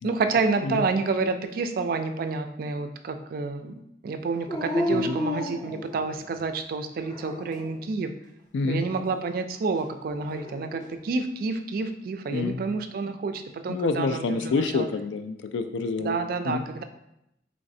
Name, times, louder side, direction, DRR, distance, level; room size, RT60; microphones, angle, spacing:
voice 1, 0.0-3.7 4.0-8.1 8.6-14.9 16.0-16.8, right 4 dB, 50° right, 8 dB, 0.3 m, -29 dB
Dog, 4.5-6.4 7.0-7.8 10.1-10.9, left 1 dB, 25° left, 0.5 m, -31 dB
voice 2, 13.7-16.2 16.4-16.6, left 4 dB, 80° left, 8 dB, 0.3 m, -28 dB
4.0 x 3.1 x 2.6 m, 0.82 s
head